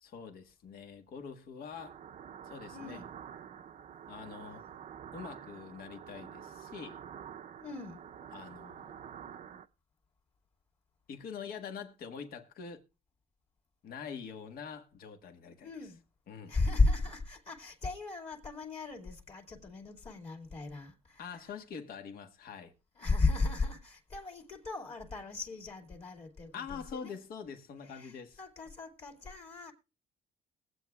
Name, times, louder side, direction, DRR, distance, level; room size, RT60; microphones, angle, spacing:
voice 1, 0.0-2.0 2.4-3.0 4.1-4.7 5.1-7.0 8.3-9.4 11.1-12.8 13.8-15.9 16.3-16.5 21.2-22.7 26.5-28.4, left 6 dB, 60° left, 1.5 m, -45 dB
sound 1, 1.7-9.7, right 8 dB, 50° right, 0.7 m, -48 dB
voice 2, 2.7-3.1 7.6-8.1 15.6-16.0 16.5-21.5 23.0-27.1 27.8-29.7, left 3 dB, 35° left, 2.4 m, -35 dB
22.0 x 8.1 x 2.4 m
cardioid pair, 110°, 17 cm